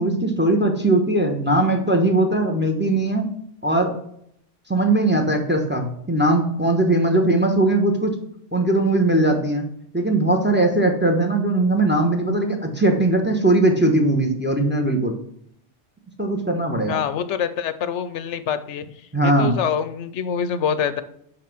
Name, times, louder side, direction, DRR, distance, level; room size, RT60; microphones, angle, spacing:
voice 1, 0.0-3.3 3.6-3.9 4.7-8.1 8.5-9.7 9.9-15.2 16.2-17.0 19.1-19.6, right 2 dB, 10° right, 4 dB, 1.0 m, -19 dB
voice 2, 16.9-18.8 19.2-21.0, left 8 dB, 80° left, 12 dB, 0.9 m, -25 dB
5.8 x 5.5 x 6.0 m, 0.72 s
omnidirectional pair, 1.2 m